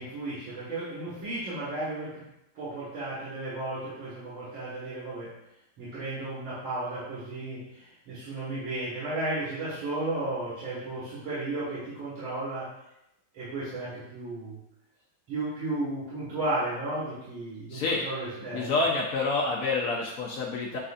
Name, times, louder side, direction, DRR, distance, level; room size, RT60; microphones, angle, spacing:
voice 1, 0.0-2.2 2.5-5.3 5.8-12.7 13.3-14.6 15.3-18.7, right 2 dB, 80° right, -12 dB, 2.3 m, -34 dB
voice 2, 17.7-18.1 18.5-20.8, left 3 dB, 90° left, -3 dB, 0.7 m, -28 dB
7.5 x 2.5 x 2.5 m, 0.84 s
omnidirectional pair, 2.2 m